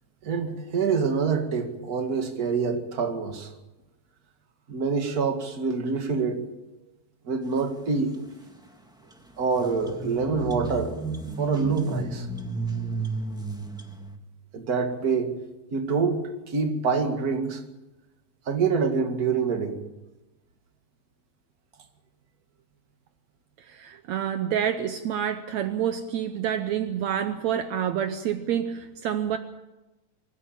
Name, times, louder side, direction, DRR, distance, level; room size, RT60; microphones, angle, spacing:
voice 1, 0.2-3.5 4.7-6.4 7.3-8.1 9.4-11.0 11.4-12.3 14.5-15.3 15.7-17.6 18.5-19.8, right 5 dB, 35° right, 5 dB, 2.3 m, -26 dB
sound 1, 9.1-9.2 9.5-14.2, right 4 dB, 5° right, 0.9 m, -32 dB
voice 2, 23.7-29.4, right 9 dB, 70° right, 9 dB, 2.0 m, -28 dB
24.0 x 13.5 x 8.9 m, 1.0 s
omnidirectional pair, 3.4 m